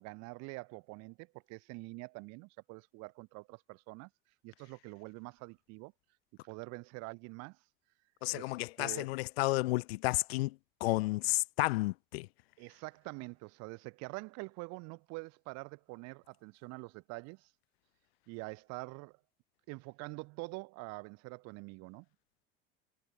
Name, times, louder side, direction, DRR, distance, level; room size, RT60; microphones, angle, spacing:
voice 1, 0.0-4.1 4.4-5.9 6.4-7.6 8.3-9.1 12.6-17.5 18.3-19.2 19.7-22.1, right 28 dB, 60° right, 0.6 m, -46 dB
voice 2, 8.2-12.3, left 21 dB, 85° left, 0.5 m, -32 dB
hypercardioid pair, 85°, 30 cm